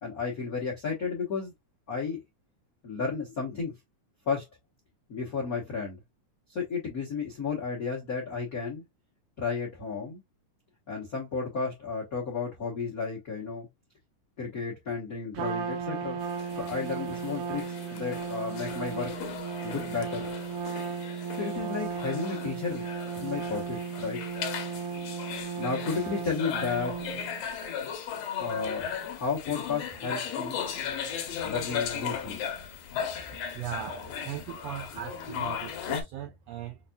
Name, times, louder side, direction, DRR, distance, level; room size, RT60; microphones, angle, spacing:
voice 1, 0.0-1.5 1.9-2.2 2.8-3.7 4.3-4.4 5.1-6.0 6.5-8.8 9.4-10.2 10.9-13.7 14.4-16.2 16.6-19.1 19.6-20.3 21.3-22.9 23.1-24.2 25.6-27.0 28.4-30.6 31.4-32.4, left 5 dB, 85° left, 0.7 m, -33 dB
Trumpet, 15.3-27.5, right 6 dB, 75° right, 2.0 m, -35 dB
sound 1, 16.2-36.0, left 7 dB, 70° left, 1.6 m, -37 dB
voice 2, 33.5-36.8, right 10 dB, 90° right, 1.4 m, -39 dB
5.8 x 2.6 x 2.2 m
omnidirectional pair, 3.6 m